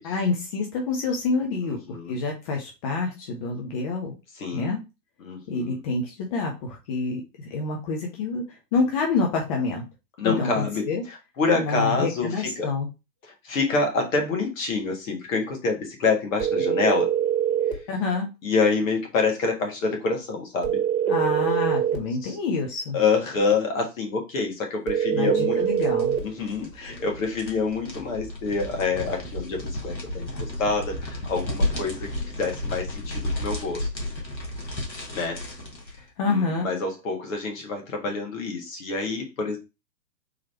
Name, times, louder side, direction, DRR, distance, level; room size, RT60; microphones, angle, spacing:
voice 1, 0.0-4.1 4.5-4.8 5.5-9.8 10.2-11.0 11.5-12.9 17.9-18.3 21.1-23.0 25.1-26.2 36.2-36.7, left 3 dB, 20° left, 1 dB, 0.6 m, -27 dB
voice 2, 1.6-2.1 4.4-4.7 5.2-5.8 10.2-10.9 11.4-12.7 13.4-17.1 18.4-20.8 22.2-22.4 22.9-25.6 26.1-32.1 32.4-33.9 35.1-35.4 35.9-36.0 36.3-39.6, left 4 dB, 50° left, 2 dB, 1.7 m, -27 dB
sound 1, 16.4-17.8 20.6-22.0 24.9-26.3, right 9 dB, 40° right, 1.4 m, -23 dB
sound 2, 25.4-36.0, left 1 dB, 85° left, 1.7 m, -33 dB
3.9 x 3.0 x 4.3 m, 0.27 s
figure-of-eight pair, 120°, 50 cm